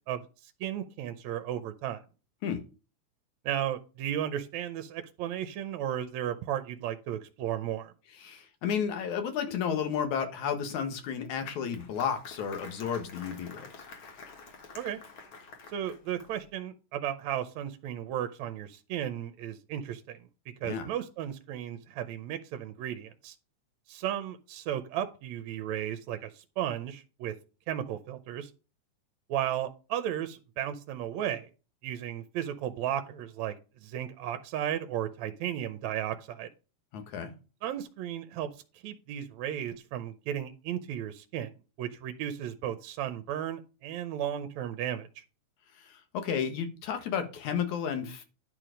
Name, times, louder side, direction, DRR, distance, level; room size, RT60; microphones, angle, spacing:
voice 1, 0.6-2.0 3.5-7.9 14.8-15.0 15.7-20.2 20.6-23.4 23.9-27.3 27.7-28.5 29.3-31.5 31.8-33.5 33.8-36.5 37.6-38.5 38.8-41.5 41.8-45.2, right 10 dB, 75° right, 1.9 m, -34 dB
voice 2, 8.2-13.7 20.6-20.9 36.9-37.3 45.8-48.2, left 7 dB, 75° left, 2.9 m, -32 dB
Applause, 11.0-16.5, left 4 dB, 50° left, 2.0 m, -49 dB
10.5 x 4.8 x 5.1 m
omnidirectional pair, 3.5 m